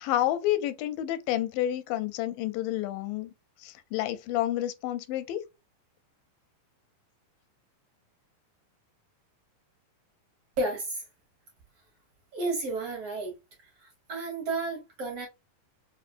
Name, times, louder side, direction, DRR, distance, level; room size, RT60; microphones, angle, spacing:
voice 1, 0.0-3.3 3.6-5.4, left 13 dB, 85° left, 2.2 m, -29 dB
voice 2, 10.6-11.0 12.3-13.3 14.1-15.3, right 2 dB, 60° right, 1.8 m, -31 dB
5.2 x 2.3 x 2.5 m
omnidirectional pair, 3.9 m